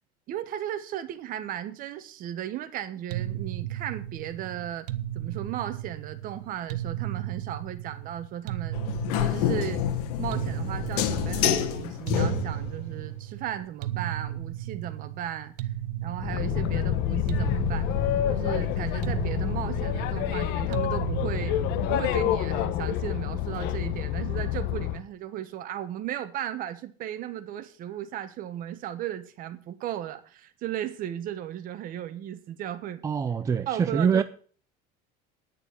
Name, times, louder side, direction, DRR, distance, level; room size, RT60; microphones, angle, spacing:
voice 1, 0.3-4.9 5.1-8.8 9.1-9.8 10.2-15.7 16.0-17.9 18.3-21.5 21.9-33.0 33.7-34.2, right 11 dB, 45° right, 1.3 m, -35 dB
sound 1, 3.1-22.4, right 13 dB, 90° right, 0.9 m, -35 dB
sound 2, 8.7-12.8, left 10 dB, 90° left, 1.5 m, -28 dB
Boat Water vehicle, 16.2-25.0, left 12 dB, 60° left, 1.0 m, -28 dB
voice 2, 33.0-34.2, right 6 dB, 15° right, 0.4 m, -24 dB
9.7 x 6.7 x 8.1 m
cardioid pair, 140°, 20 cm